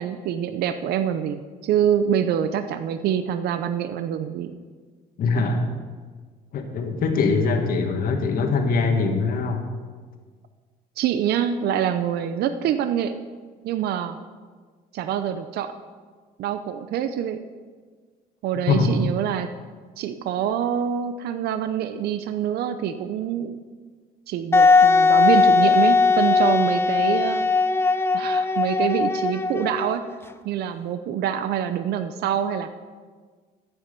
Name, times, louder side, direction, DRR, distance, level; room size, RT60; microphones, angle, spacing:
voice 1, 0.0-4.6 11.0-13.2 13.6-14.2 14.9-15.7 16.4-17.4 18.4-19.5 20.0-23.6 24.3-27.4 28.1-30.0 30.4-32.7, right 9 dB, 70° right, 10 dB, 0.7 m, -25 dB
voice 2, 5.2-5.6 6.5-9.6 18.7-18.9, left 4 dB, 60° left, 4 dB, 1.8 m, -22 dB
Wind instrument woodwind instrument, 24.5-30.1, left 4 dB, 15° left, 0.6 m, -19 dB
13.0 x 8.9 x 5.2 m, 1.5 s
cardioid pair, 110°, 17 cm